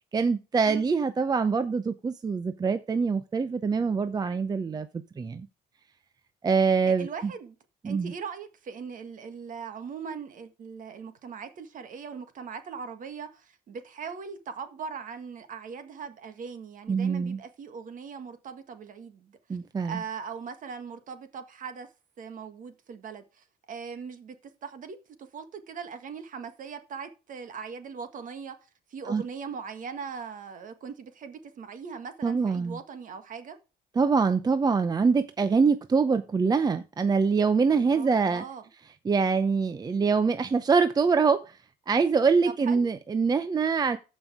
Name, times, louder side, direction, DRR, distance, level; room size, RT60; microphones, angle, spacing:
voice 1, 0.1-4.9 5.2-5.5 6.4-7.3 7.8-8.1 16.9-17.4 19.5-20.0 29.1-29.2 32.2-32.8 34.0-38.4 39.0-41.6 41.9-44.0, right 5 dB, 25° right, 0.6 m, -24 dB
voice 2, 0.7-1.0 6.8-7.6 7.8-19.4 19.8-21.9 22.2-24.4 24.6-28.6 28.9-33.6 37.7-38.7 42.7-42.8, right 6 dB, 50° right, 1.8 m, -40 dB
14.5 x 5.4 x 3.6 m
cardioid pair, 110°, 17 cm